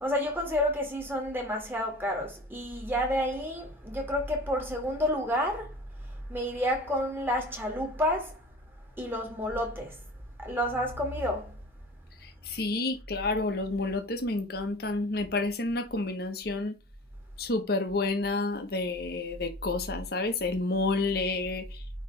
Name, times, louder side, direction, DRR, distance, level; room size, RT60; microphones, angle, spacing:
voice 1, 0.0-8.4 9.0-10.0 10.4-11.6, equal, 10° right, 1.8 m, -30 dB
voice 2, 12.2-16.8 17.4-21.8, left 3 dB, 60° left, 1.1 m, -30 dB
9.3 x 3.3 x 3.4 m
head